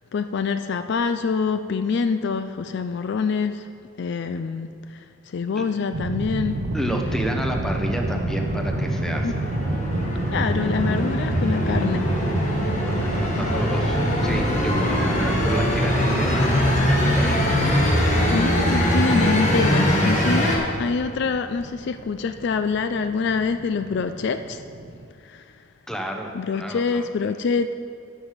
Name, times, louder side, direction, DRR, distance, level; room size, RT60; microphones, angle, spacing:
voice 1, 0.1-3.7 4.0-6.6 9.2-9.3 10.3-12.0 18.3-24.6 25.2-25.5 26.3-27.7, left 5 dB, 55° left, 10 dB, 0.3 m, -25 dB
sound 1, 5.9-25.1, right 2 dB, 65° right, 0.7 m, -30 dB
sound 2, 6.4-20.6, equal, 35° left, 1.5 m, -23 dB
voice 2, 6.7-9.3 13.0-17.5 25.9-26.3 26.6-27.0, equal, ahead, 2 dB, 0.8 m, -30 dB
12.0 x 7.4 x 5.1 m, 2.4 s
head